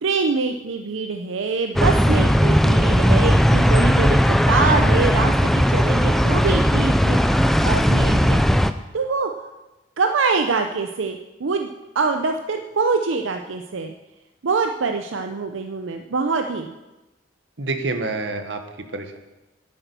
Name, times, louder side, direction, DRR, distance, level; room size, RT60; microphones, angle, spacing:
voice 1, 0.0-8.4 8.9-9.3 10.0-13.9 14.4-16.8, right 4 dB, 90° right, 5 dB, 0.6 m, -24 dB
sound 1, 1.8-8.7, equal, ahead, 0.4 m, -17 dB
voice 2, 17.6-19.2, right 3 dB, 70° right, 6 dB, 1.3 m, -28 dB
10.0 x 8.5 x 6.8 m, 1.1 s
head